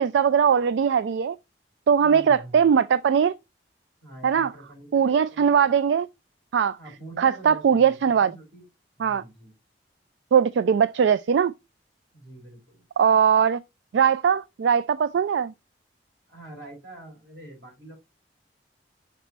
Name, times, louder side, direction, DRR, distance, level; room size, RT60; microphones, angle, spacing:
voice 1, 0.0-1.4 1.9-3.3 4.2-4.5 4.9-6.1 6.5-6.8 7.2-8.3 9.0-9.2 10.3-11.5 13.0-13.6 13.9-15.5, right 7 dB, 85° right, 0.3 m, -20 dB
voice 2, 2.0-2.7 4.0-5.5 6.8-8.7 9.0-9.5 12.1-12.9 16.3-18.0, right 1 dB, 65° right, 4.8 m, -45 dB
5.9 x 4.1 x 4.2 m
head